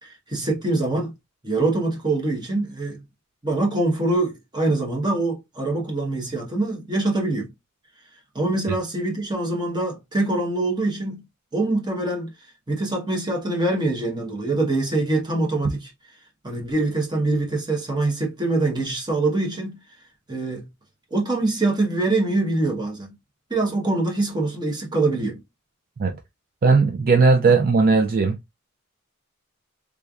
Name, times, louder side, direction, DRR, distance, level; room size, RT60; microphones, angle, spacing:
voice 1, 0.0-1.1 1.4-3.0 3.4-7.5 8.3-11.2 11.5-12.3 12.7-15.9 16.4-19.8 20.3-20.7 21.1-23.1 23.5-25.4, right 2 dB, 20° right, 1.1 m, -24 dB
voice 2, 26.6-28.4, right 4 dB, 45° right, 0.4 m, -17 dB
3.5 x 3.2 x 2.4 m
head